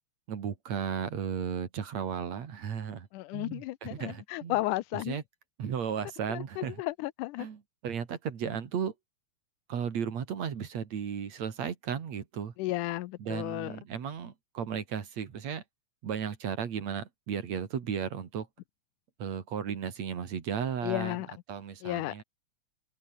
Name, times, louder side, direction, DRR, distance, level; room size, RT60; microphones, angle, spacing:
voice 1, 0.3-3.1 3.3-4.6 4.9-5.2 5.6-6.8 7.4-8.9 9.7-12.5 13.2-15.6 16.0-18.5 19.2-21.2 21.5-22.2, right 7 dB, 60° right, 3.5 m, -35 dB
voice 2, 3.1-5.2 6.3-7.5 12.6-13.7 20.8-21.3 21.8-22.2, left 18 dB, 90° left, 2.2 m, -33 dB
omnidirectional pair, 3.6 m